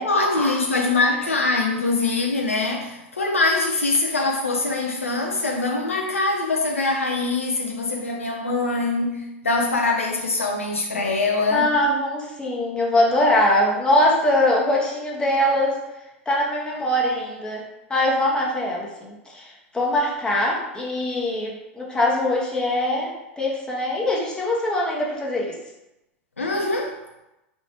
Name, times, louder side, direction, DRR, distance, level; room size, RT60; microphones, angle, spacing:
voice 1, 0.0-11.7 26.4-27.0, left 3 dB, 85° left, 1 dB, 0.4 m, -23 dB
voice 2, 11.5-15.8 16.3-17.6 17.9-25.6, left 1 dB, 10° left, -3 dB, 0.9 m, -22 dB
4.3 x 3.0 x 2.9 m, 0.95 s
figure-of-eight pair, 90°, 7 cm